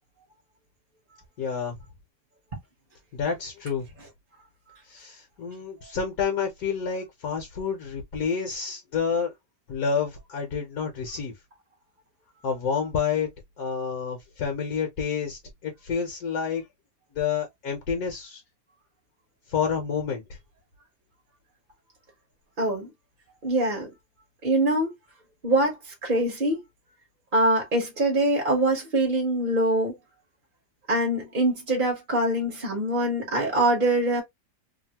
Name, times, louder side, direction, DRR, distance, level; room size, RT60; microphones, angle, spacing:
voice 1, 1.4-1.8 3.1-3.9 4.9-9.3 9.7-11.3 12.4-13.3 13.6-16.6 17.1-18.4 19.5-20.4, left 6 dB, 65° left, 1.2 m, -29 dB
voice 2, 22.6-22.9 23.4-23.9 24.4-24.9 25.4-26.6 27.3-29.9 30.9-34.2, right 1 dB, 35° right, 1.0 m, -24 dB
2.9 x 2.6 x 2.8 m
omnidirectional pair, 1.8 m